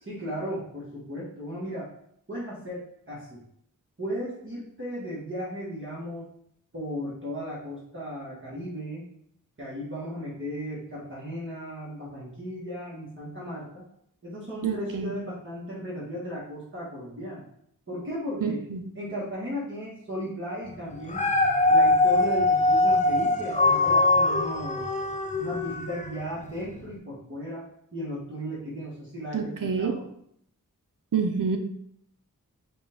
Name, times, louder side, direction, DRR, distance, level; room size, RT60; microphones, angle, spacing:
voice 1, 0.0-1.9 2.3-3.4 4.0-6.3 6.7-9.1 9.6-13.9 14.2-17.4 17.9-18.6 18.9-21.3 21.7-24.8 25.4-27.7 27.9-30.1, equal, 35° right, -8 dB, 1.6 m, -35 dB
voice 2, 14.6-15.1 18.4-18.8 29.3-30.0 31.1-31.6, right 5 dB, 65° right, 7 dB, 0.6 m, -27 dB
Dog, 20.9-26.2 26.8-26.9, left 2 dB, 20° left, 0.6 m, -22 dB
5.3 x 2.5 x 3.6 m, 0.70 s
wide cardioid pair, 60°, 34 cm